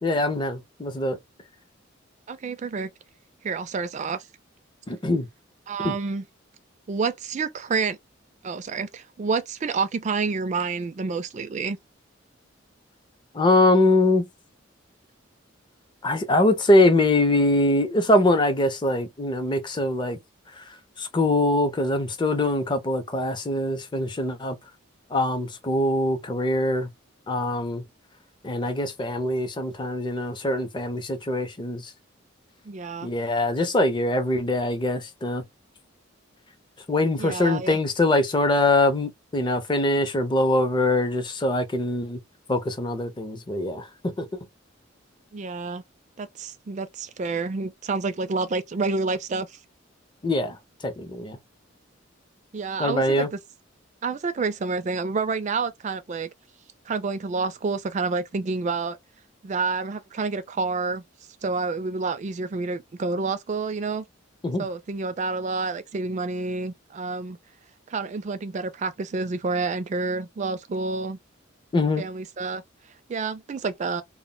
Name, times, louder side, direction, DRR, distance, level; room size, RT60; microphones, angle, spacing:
voice 1, 0.0-1.2 4.9-5.3 5.8-5.9 13.3-14.3 16.0-20.2 20.6-24.6 25.1-26.9 27.3-27.8 28.4-31.9 33.0-35.4 36.9-42.2 42.5-43.9 44.2-44.3 50.2-50.6 50.8-51.4 52.8-53.3 64.4-64.7 71.7-72.0, left 1 dB, 25° left, 0.5 m, -23 dB
voice 2, 2.3-2.9 3.4-4.3 5.7-6.2 6.9-8.0 8.4-11.8 32.7-33.1 37.2-37.8 45.3-45.8 46.2-49.6 52.5-53.4 54.0-56.3 56.9-59.0 59.4-61.0 61.4-64.1 64.6-67.4 67.9-71.2 72.0-72.6 73.1-74.0, right 4 dB, 35° right, 0.3 m, -28 dB
2.1 x 2.1 x 3.7 m
head